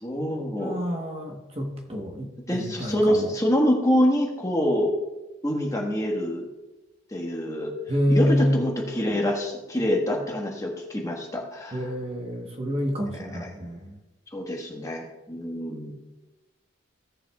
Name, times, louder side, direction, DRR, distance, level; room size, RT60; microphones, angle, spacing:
voice 1, 0.0-0.8 2.5-4.9 5.4-6.5 7.1-7.7 8.1-11.9 13.1-13.5 14.3-15.9, equal, 15° left, 0 dB, 1.3 m, -26 dB
voice 2, 0.6-3.3 7.9-8.7 11.7-14.0, equal, 30° right, 2 dB, 1.1 m, -27 dB
16.5 x 7.3 x 2.3 m, 1.0 s
head